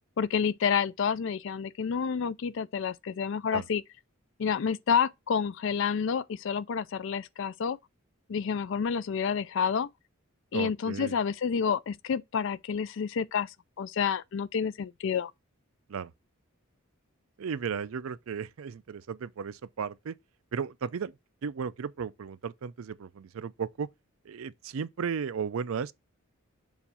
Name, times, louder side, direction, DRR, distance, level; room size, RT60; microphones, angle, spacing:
voice 1, 0.2-3.8 4.4-7.8 8.3-9.9 10.5-15.3, left 6 dB, 60° left, 0.4 m, -29 dB
voice 2, 10.5-11.2 15.9-16.1 17.4-20.1 20.5-21.1 21.4-23.9 24.3-25.9, right 6 dB, 75° right, 0.4 m, -35 dB
7.1 x 2.5 x 5.5 m
head